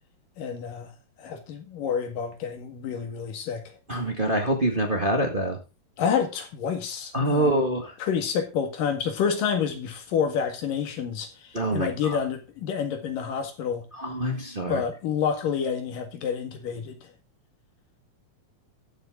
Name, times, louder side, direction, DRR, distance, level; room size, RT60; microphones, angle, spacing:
voice 1, 0.4-0.9 1.2-3.6 6.0-7.6 8.0-13.9 14.7-17.0, left 7 dB, 70° left, 3.4 m, -28 dB
voice 2, 3.9-5.6 7.1-7.9 11.5-12.2 14.0-14.8, right 1 dB, 35° right, 0.8 m, -25 dB
14.0 x 8.1 x 3.7 m
omnidirectional pair, 4.1 m